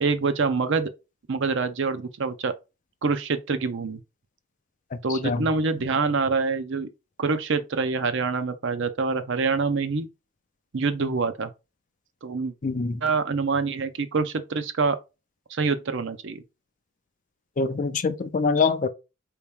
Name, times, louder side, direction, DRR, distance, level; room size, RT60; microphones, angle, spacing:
voice 1, 0.0-0.9 1.3-2.5 3.0-4.0 5.0-6.9 7.2-10.1 10.7-11.5 12.2-12.5 13.0-15.0 15.5-16.4, right 4 dB, 55° right, 0.6 m, -25 dB
voice 2, 4.9-5.5 12.6-13.0 17.6-18.9, left 4 dB, 35° left, 0.4 m, -25 dB
4.5 x 2.9 x 3.5 m
head